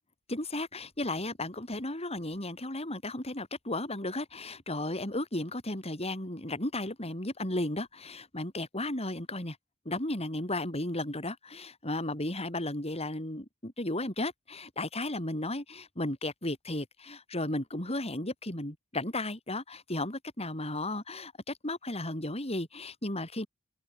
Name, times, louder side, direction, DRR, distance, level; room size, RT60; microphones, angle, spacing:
voice 1, 0.3-9.6 9.8-23.5, left 1 dB, 30° left, 7.8 m, -34 dB
open air
head